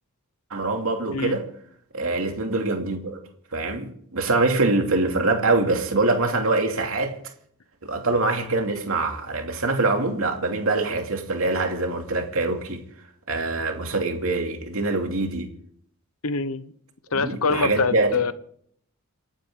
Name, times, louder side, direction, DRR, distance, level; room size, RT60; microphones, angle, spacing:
voice 1, 0.5-1.5 1.9-3.2 3.5-7.1 7.8-12.8 13.3-15.5 17.1-18.1, right 3 dB, 65° right, 2.7 m, -24 dB
voice 2, 16.2-16.7 17.1-18.3, left 4 dB, 75° left, 1.0 m, -24 dB
28.5 x 11.5 x 3.8 m
head